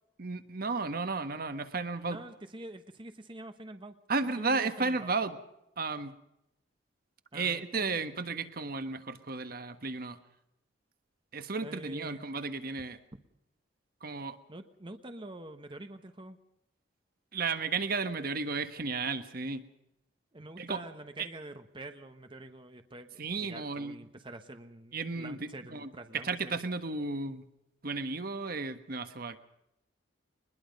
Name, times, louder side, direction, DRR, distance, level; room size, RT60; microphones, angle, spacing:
voice 1, 0.2-2.2 4.1-5.4 5.8-6.1 7.3-10.2 11.3-13.0 14.0-14.4 17.3-19.6 20.6-20.8 21.2-21.3 23.2-23.9 24.9-27.4 27.8-29.4, right 4 dB, 55° right, 10 dB, 1.4 m, -33 dB
voice 2, 2.1-3.9 4.4-5.1 7.3-8.0 11.6-12.3 14.5-16.4 20.3-26.6, right 2 dB, 25° right, 8 dB, 1.3 m, -46 dB
23.0 x 21.0 x 5.4 m, 0.84 s
head